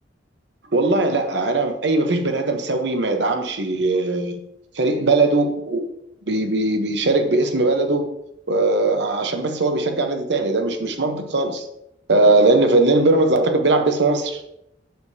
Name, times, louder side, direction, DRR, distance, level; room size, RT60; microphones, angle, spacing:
voice 1, 0.7-4.4 4.7-5.9 6.3-8.1 8.5-11.7 12.1-14.4, right 2 dB, 70° right, 6 dB, 0.9 m, -19 dB
7.9 x 6.7 x 2.8 m, 0.80 s
head